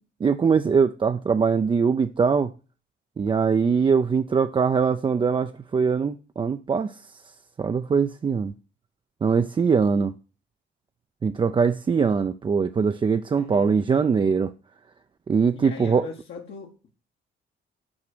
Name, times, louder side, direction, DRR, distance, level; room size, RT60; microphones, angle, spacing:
voice 1, 0.2-2.5 3.2-7.2 7.6-8.5 9.2-10.1 11.2-14.5 15.3-16.1, right 5 dB, 25° right, 0.4 m, -22 dB
voice 2, 13.3-13.8 15.5-16.8, left 5 dB, 75° left, 1.4 m, -39 dB
6.1 x 4.8 x 6.0 m
cardioid pair, 90°, 20 cm